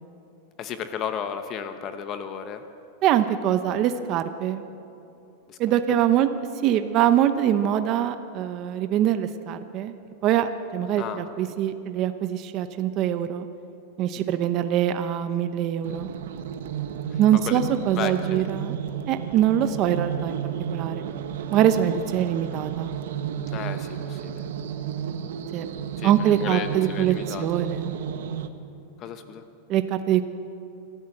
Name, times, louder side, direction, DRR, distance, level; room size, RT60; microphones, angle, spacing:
voice 1, 0.6-2.6 5.5-5.6 5.9-6.0 11.0-11.6 14.2-14.4 17.1-17.6 17.9-18.4 23.5-24.5 26.0-27.5 29.0-29.4, left 8 dB, 30° left, 9 dB, 0.9 m, -34 dB
voice 2, 3.0-4.6 5.6-6.3 6.6-9.9 10.2-13.5 14.0-16.1 17.2-18.8 19.1-21.0 21.5-22.9 25.5-25.7 26.0-27.9 29.7-30.2, right 11 dB, 30° right, 9 dB, 0.7 m, -23 dB
sound 1, 15.8-28.5, right 9 dB, 75° right, 1.2 m, -32 dB
26.0 x 14.0 x 7.8 m, 2.8 s
supercardioid pair, 165°, 0 cm